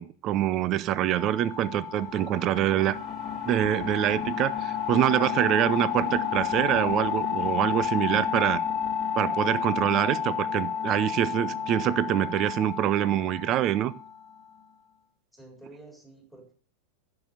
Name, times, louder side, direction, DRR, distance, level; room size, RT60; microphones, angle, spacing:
voice 1, 0.0-3.0 3.5-8.6 9.1-13.9, right 12 dB, 35° right, 17 dB, 0.6 m, -25 dB
sound 1, 0.9-14.4, left 8 dB, 30° left, 1.5 m, -31 dB
sound 2, 5.3-12.2, right 9 dB, 55° right, 1.4 m, -51 dB
voice 2, 15.3-16.5, right 2 dB, 5° right, 1 dB, 4.3 m, -49 dB
10.5 x 6.9 x 6.8 m, 0.41 s
figure-of-eight pair, 90°, 0 cm